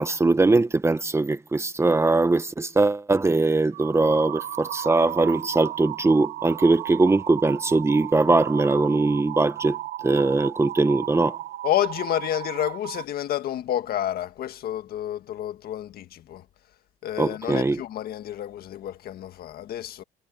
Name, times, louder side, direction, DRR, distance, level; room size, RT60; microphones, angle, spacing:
voice 1, 0.0-11.4 17.2-17.8, right 3 dB, 15° right, 1.1 m, -21 dB
sound 1, 3.7-13.0, right 14 dB, 80° right, 3.4 m, -35 dB
voice 2, 11.6-16.4 17.0-20.0, left 12 dB, 65° left, 1.8 m, -29 dB
cardioid pair, 110°, 17 cm